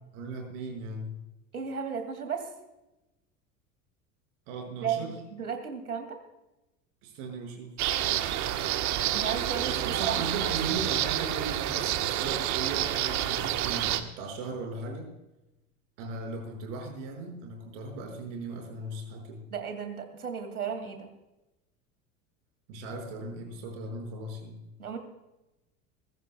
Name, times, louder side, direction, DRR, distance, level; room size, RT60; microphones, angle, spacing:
voice 1, 0.1-1.1 4.5-5.2 7.0-7.7 9.6-15.1 16.0-19.4 22.7-24.6, right 3 dB, 55° right, 2 dB, 5.7 m, -37 dB
voice 2, 1.5-2.5 4.8-5.1 5.4-6.2 9.1-10.2 19.5-21.1 24.8-25.0, right 7 dB, 80° right, 6 dB, 2.5 m, -34 dB
sound 1, 7.8-14.0, right 12 dB, 40° right, 1.2 m, -29 dB
21.5 x 15.0 x 2.3 m, 0.97 s
figure-of-eight pair, 75°, 43 cm